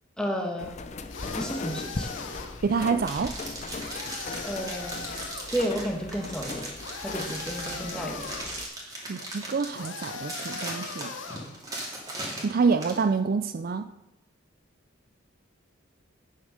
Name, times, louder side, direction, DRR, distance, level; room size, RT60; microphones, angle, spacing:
voice 1, 0.2-0.7 1.3-2.1 4.4-5.0 5.5-6.7 7.0-8.3, equal, 5° left, 2 dB, 1.5 m, -32 dB
sound 1, 0.6-8.6, left 3 dB, 35° left, 0.6 m, -38 dB
sound 2, 1.1-2.7 3.8-5.6 6.8-8.6 9.7-11.5, left 4 dB, 70° left, 1.2 m, -40 dB
voice 2, 2.6-3.4 9.1-11.1 12.4-13.9, right 5 dB, 50° right, 10 dB, 0.4 m, -27 dB
sound 3, 3.0-13.0, right 1 dB, 20° right, 2.6 m, -38 dB
9.5 x 6.6 x 6.6 m, 0.90 s
head